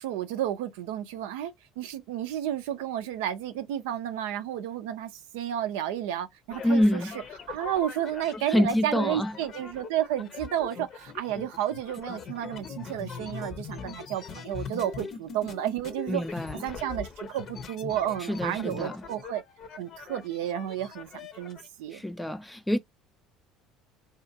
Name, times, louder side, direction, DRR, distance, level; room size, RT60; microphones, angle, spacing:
voice 1, 0.0-7.0 7.5-19.4 19.8-22.0, right 11 dB, 70° right, 0.4 m, -32 dB
sound 1, 6.5-21.7, left 5 dB, 50° left, 0.6 m, -41 dB
voice 2, 6.6-7.1 8.5-9.3 16.1-16.6 18.3-19.0 21.9-22.8, left 1 dB, 10° left, 0.4 m, -26 dB
2.8 x 2.4 x 2.7 m
hypercardioid pair, 65°, 0 cm